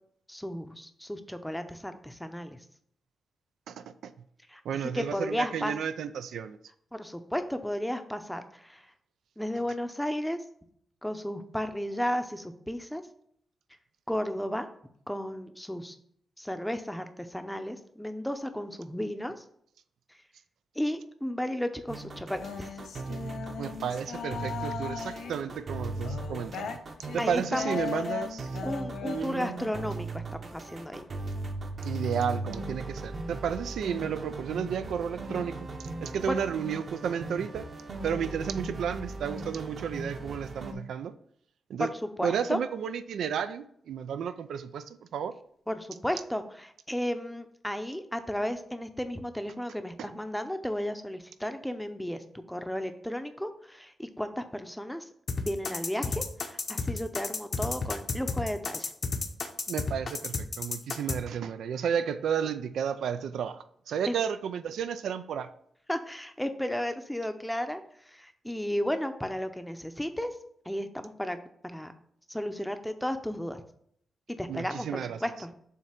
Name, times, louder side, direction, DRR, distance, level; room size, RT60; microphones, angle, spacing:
voice 1, 0.3-2.6 4.5-5.7 6.9-8.9 9.4-10.4 11.0-13.0 14.1-14.7 15.1-16.0 16.4-19.4 20.1-20.2 20.7-22.7 27.2-27.8 28.6-31.0 36.3-36.4 41.8-42.6 45.7-55.1 55.4-58.9 64.1-64.2 65.9-70.4 70.6-71.4 71.6-71.9 72.3-73.6 74.3-75.5, equal, 5° left, 8 dB, 0.6 m, -34 dB
voice 2, 3.7-4.1 4.6-6.6 23.6-26.8 27.1-28.5 29.0-29.7 31.8-35.7 36.0-37.7 38.0-41.1 41.7-41.9 42.2-45.3 50.0-50.1 59.7-65.5 74.5-75.2, right 8 dB, 90° right, 11 dB, 0.4 m, -32 dB
sound 1, 21.9-40.7, right 2 dB, 50° right, 0.9 m, -38 dB
sound 2, 22.4-25.4 26.0-29.9, left 6 dB, 85° left, 0.6 m, -38 dB
sound 3, 55.3-61.2, left 4 dB, 50° left, 0.8 m, -31 dB
7.4 x 2.7 x 5.8 m, 0.66 s
cardioid pair, 100°, 0 cm